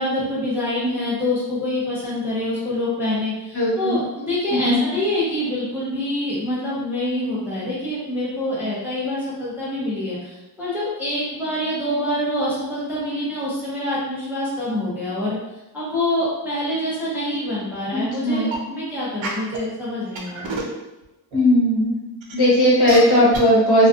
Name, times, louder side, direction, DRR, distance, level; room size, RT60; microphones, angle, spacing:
voice 1, 0.0-15.4 15.7-20.5, left 1 dB, 5° right, -9 dB, 0.5 m, -26 dB
voice 2, 3.5-3.9 4.5-4.8 17.9-18.5 21.3-21.9 22.3-23.9, equal, 60° left, -7 dB, 1.0 m, -17 dB
sound 1, 18.4-18.6 19.2-19.6 20.1-20.8 21.3-21.4 22.2-22.3 22.9-23.0 23.3-23.4, right 4 dB, 85° right, 0.6 m, -28 dB
2.5 x 2.3 x 2.3 m, 1.0 s
wide cardioid pair, 175°, 44 cm